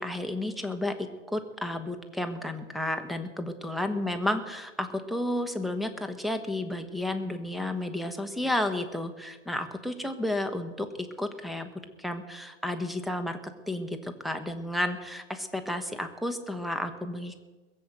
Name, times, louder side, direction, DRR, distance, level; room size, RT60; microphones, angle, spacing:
voice 1, 0.0-11.7 12.0-17.4, left 1 dB, ahead, 8 dB, 1.3 m, -32 dB
21.0 x 7.8 x 8.0 m, 1.2 s
hypercardioid pair, 110°, 37 cm